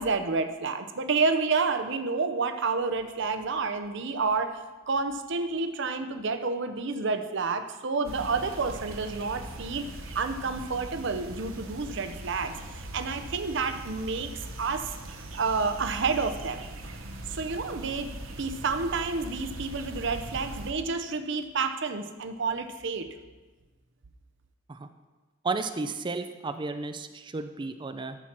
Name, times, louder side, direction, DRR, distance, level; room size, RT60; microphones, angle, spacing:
voice 1, 0.0-4.6 4.9-9.9 10.1-14.3 14.6-14.9 15.3-16.7 17.3-18.1 18.4-23.1, right 4 dB, 60° right, 8 dB, 0.7 m, -29 dB
sound 1, 8.0-20.7, right 1 dB, 80° right, 1.0 m, -41 dB
voice 2, 25.4-28.2, right 3 dB, 25° right, 9 dB, 0.4 m, -33 dB
13.0 x 4.5 x 5.9 m, 1.2 s
head